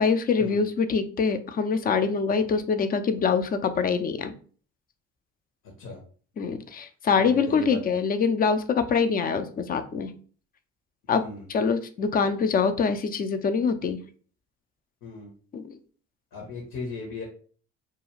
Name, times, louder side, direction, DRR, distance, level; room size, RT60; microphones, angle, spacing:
voice 1, 0.0-4.3 6.4-10.1 11.1-11.2 11.5-14.0 15.5-15.8, left 5 dB, 25° left, 10 dB, 0.4 m, -24 dB
voice 2, 7.2-7.8 11.1-11.5 15.0-15.3 16.3-17.3, left 2 dB, 60° left, 0 dB, 0.9 m, -37 dB
2.4 x 2.3 x 3.0 m, 0.43 s
hypercardioid pair, 55°, 35 cm